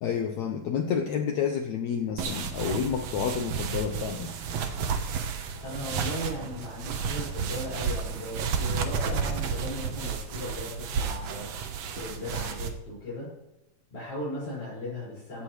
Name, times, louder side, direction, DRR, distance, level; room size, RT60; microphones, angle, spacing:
voice 1, 0.0-4.3, left 7 dB, 85° left, 5 dB, 1.6 m, -29 dB
sound 1, 2.2-12.7, right 6 dB, 65° right, 1.7 m, -32 dB
voice 2, 5.6-11.5 11.9-13.3 13.9-15.4, left 1 dB, 50° left, -10 dB, 7.2 m, -37 dB
16.5 x 15.5 x 3.3 m, 0.88 s
omnidirectional pair, 4.4 m